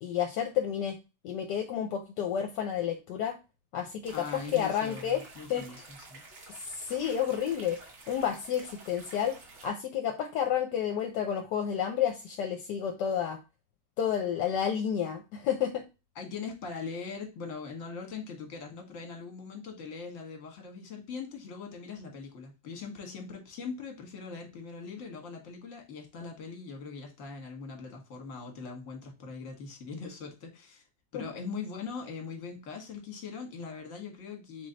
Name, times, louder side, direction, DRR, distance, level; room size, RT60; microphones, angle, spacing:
voice 1, 0.0-1.0 1.2-3.4 3.7-5.2 5.5-5.8 6.7-7.8 8.1-13.4 14.0-15.8 31.1-31.2, left 9 dB, 75° left, 1.2 m, -30 dB
sound 1, 4.0-9.7, right 3 dB, 45° right, 1.2 m, -50 dB
voice 2, 4.1-5.8 6.1-6.2 16.1-30.8 31.1-34.7, left 5 dB, 50° left, 1.4 m, -41 dB
3.9 x 3.2 x 3.8 m
omnidirectional pair, 1.9 m